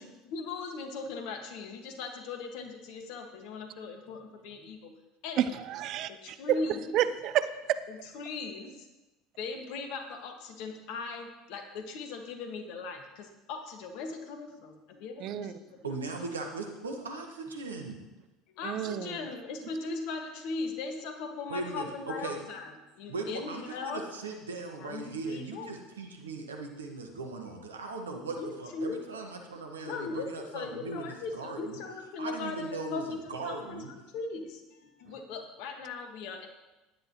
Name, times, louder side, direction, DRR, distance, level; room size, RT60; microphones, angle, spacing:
voice 1, 0.0-4.9 5.2-5.6 6.1-7.0 7.9-8.9 9.4-16.0 18.5-24.1 24.8-25.8 28.4-29.0 29.5-36.5, left 4 dB, 60° left, 4 dB, 1.8 m, -39 dB
voice 2, 5.4-6.4 6.9-7.8 15.2-15.5 18.6-19.1, right 11 dB, 55° right, 13 dB, 0.6 m, -30 dB
voice 3, 15.8-18.0 21.5-21.9 22.2-22.4 23.1-31.8 32.2-33.0 33.3-33.9, right 3 dB, 85° right, 3 dB, 1.6 m, -38 dB
16.0 x 10.5 x 3.1 m, 1.1 s
figure-of-eight pair, 70°, 0 cm